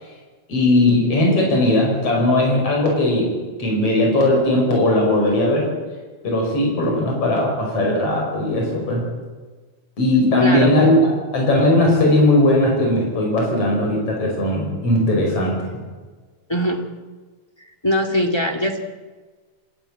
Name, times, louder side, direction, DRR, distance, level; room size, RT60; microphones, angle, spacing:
voice 1, 0.5-3.3 3.6-5.7 6.2-9.1 10.0-15.8, left 1 dB, 50° left, 0 dB, 6.4 m, -18 dB
voice 2, 10.4-10.7 16.5-16.8 17.8-18.8, equal, 10° left, 4 dB, 1.6 m, -21 dB
28.0 x 14.0 x 8.8 m, 1.4 s
omnidirectional pair, 3.4 m